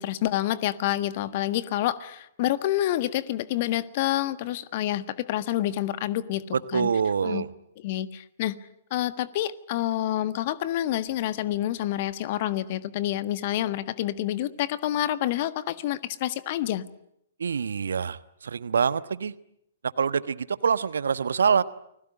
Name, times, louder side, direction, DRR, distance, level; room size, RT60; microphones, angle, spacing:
voice 1, 0.0-6.9 7.2-7.4 7.8-8.6 8.9-16.8, left 13 dB, 45° left, 14 dB, 1.5 m, -28 dB
voice 2, 6.5-7.5 17.4-19.3 20.0-21.6, right 6 dB, 65° right, 15 dB, 1.2 m, -25 dB
29.5 x 21.0 x 9.1 m, 0.75 s
figure-of-eight pair, 115°, 0 cm